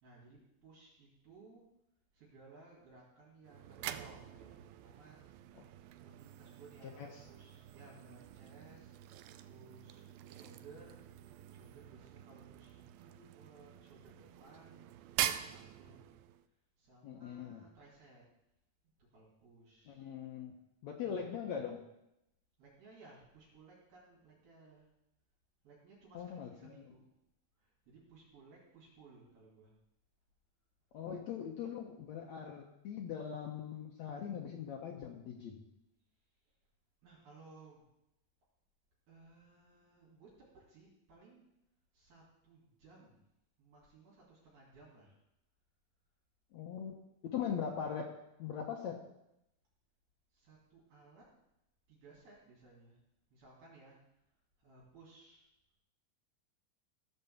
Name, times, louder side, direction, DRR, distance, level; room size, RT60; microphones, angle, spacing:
voice 1, 0.0-1.6 2.1-5.2 6.0-11.2 11.5-14.9 15.2-16.1 16.8-18.3 19.0-20.1 21.0-21.2 22.6-24.9 25.6-27.1 27.6-29.8 37.0-37.9 39.1-41.5 41.9-43.2 43.6-45.2 50.3-51.3 51.9-53.0 53.3-54.0 54.6-55.5, right 3 dB, 65° right, -6 dB, 4.5 m, -59 dB
sound 1, 3.4-16.5, right 12 dB, 85° right, 2.1 m, -45 dB
voice 2, 17.0-17.6 19.9-20.5 20.8-21.8 26.1-26.8 30.9-35.6 46.5-48.1 48.4-49.0, left 7 dB, 80° left, 1 dB, 1.5 m, -41 dB
15.0 x 5.6 x 7.0 m, 0.86 s
omnidirectional pair, 4.6 m